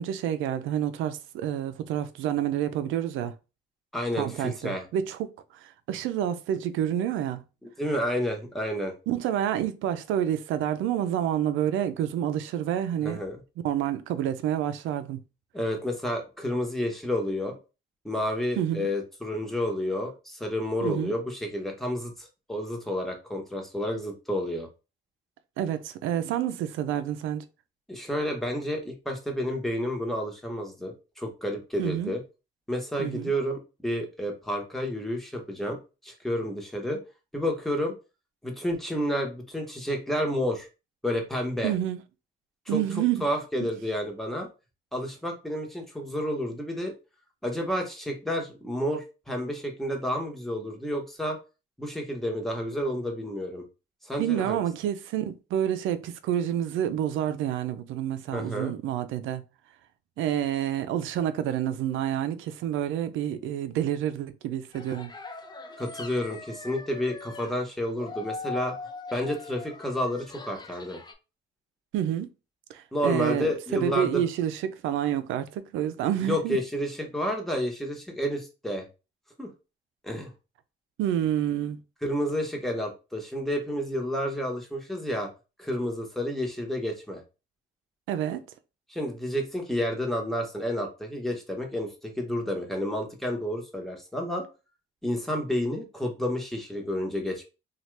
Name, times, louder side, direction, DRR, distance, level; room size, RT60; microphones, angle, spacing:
voice 1, 0.0-3.3 4.2-7.4 9.1-13.2 13.6-15.2 18.6-18.9 20.8-21.1 25.6-27.4 31.8-32.1 33.0-33.3 41.6-42.0 42.7-43.3 54.2-59.4 60.2-65.1 71.9-72.3 72.7-76.6 81.0-81.8 88.1-88.4, right 10 dB, 90° right, 0.4 m, -28 dB
voice 2, 3.9-4.9 7.6-8.9 13.0-13.4 15.5-17.6 18.0-24.7 27.9-32.2 32.7-35.8 36.0-37.0 37.3-37.9 38.4-40.7 41.0-41.7 42.7-42.8 43.2-44.5 44.9-46.9 47.4-51.4 51.8-53.6 54.0-54.6 58.3-58.7 65.8-68.7 69.1-71.0 72.9-74.2 76.2-78.9 79.4-79.5 80.0-80.3 82.0-85.3 85.6-87.2 88.9-94.4 95.0-97.4, equal, ahead, 0.9 m, -30 dB
sound 1, 64.7-67.6 67.9-71.1, left 3 dB, 20° left, 0.5 m, -41 dB
2.8 x 2.3 x 3.1 m
cardioid pair, 90°, 20 cm